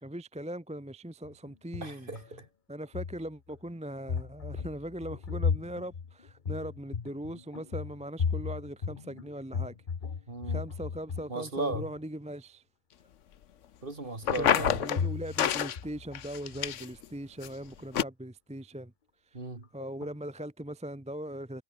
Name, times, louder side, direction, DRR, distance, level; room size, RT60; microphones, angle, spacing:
voice 1, 0.0-2.1 2.7-9.7 10.4-12.6 14.4-18.9 19.7-21.6, right 1 dB, 5° right, 0.8 m, -40 dB
sound 1, 1.2-2.5 2.8-3.7 4.1-11.3 11.6-12.0 14.7-15.5 15.8-16.7 19.8-20.1 20.4-20.5, left 6 dB, 35° left, 1.1 m, -35 dB
voice 2, 1.8-2.4 10.3-10.6 11.3-11.9 13.8-14.7 19.3-19.6, right 2 dB, 35° right, 2.8 m, -36 dB
sound 2, 14.2-15.0 15.4-15.8 16.1-17.0 17.4-17.5 17.9-18.0, left 9 dB, 60° left, 1.1 m, -27 dB
omnidirectional pair, 1.6 m